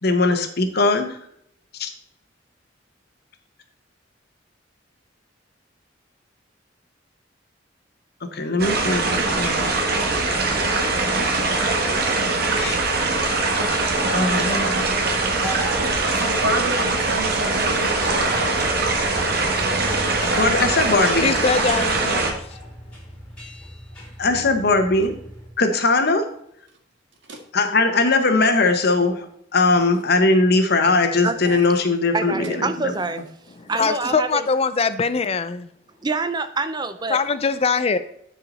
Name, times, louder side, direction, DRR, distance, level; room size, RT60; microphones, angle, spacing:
voice 1, 0.0-1.2 1.8-1.9 8.3-9.6 11.1-11.9 12.6-12.8 14.1-15.0 15.4-15.5 20.4-21.3 24.2-25.1 25.6-26.3 27.5-29.3 29.5-32.9, left 3 dB, 60° left, 1.1 m, -20 dB
sound 1, 8.6-22.3, right 3 dB, 55° right, 1.5 m, -22 dB
sound 2, 15.0-25.5, equal, 5° left, 2.6 m, -39 dB
voice 2, 16.1-18.4 27.3-27.4, right 1 dB, 75° right, 1.7 m, -28 dB
voice 3, 21.1-22.4 33.7-35.7 37.1-38.0, left 5 dB, 35° left, 0.4 m, -22 dB
voice 4, 31.2-31.6 32.1-33.2 33.7-34.5 36.0-37.2, right 3 dB, 25° right, 0.5 m, -26 dB
9.9 x 4.9 x 4.1 m
head